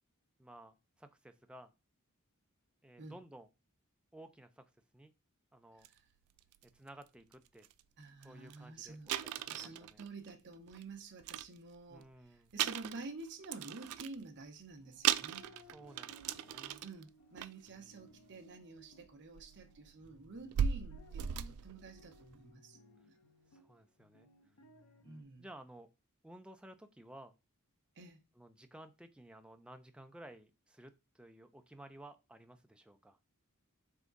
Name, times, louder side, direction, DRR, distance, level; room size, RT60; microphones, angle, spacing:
voice 1, 0.4-1.7 2.8-3.5 4.1-5.1 5.5-5.9 6.6-7.7 8.2-10.0 11.9-12.5 15.7-16.8 23.5-24.3 25.4-25.9 26.2-27.3 28.4-33.2, right 1 dB, 5° right, 0.4 m, -55 dB
sound 1, 5.8-5.9 6.4-6.6 7.3-7.4 7.6-7.8 8.2-8.3 8.5-8.6 9.1-10.8 11.2-12.1 12.5-14.2 14.7-14.8 15.0-17.0 17.4-17.7 18.8-18.9 19.3-22.3, right 9 dB, 80° right, 0.3 m, -37 dB
voice 2, 8.0-9.1 9.5-15.5 16.8-22.8 25.0-25.5 28.0-28.2, right 3 dB, 55° right, 0.9 m, -50 dB
sound 2, 14.7-25.2, equal, 70° left, 0.7 m, -62 dB
3.6 x 3.5 x 3.9 m
head